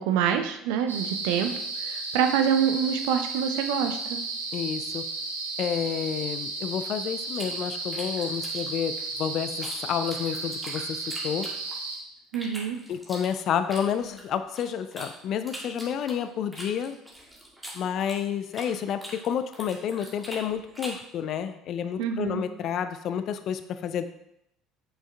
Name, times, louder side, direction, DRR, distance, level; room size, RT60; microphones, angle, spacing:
voice 1, 0.0-1.5 1.8-4.2 12.3-12.8 22.0-22.4, right 8 dB, 60° right, 7 dB, 0.6 m, -26 dB
sound 1, 0.9-12.0, right 3 dB, 80° right, 0.9 m, -34 dB
voice 2, 4.5-5.0 5.6-11.5 12.9-17.0 17.7-24.0, left 8 dB, 50° left, 11 dB, 0.4 m, -30 dB
sound 2, 7.3-9.8 10.1-11.9 12.3-15.1 15.5-18.7 19.0-21.1, equal, ahead, 2.0 m, -42 dB
7.9 x 6.2 x 2.3 m, 0.81 s
figure-of-eight pair, 60°, 0 cm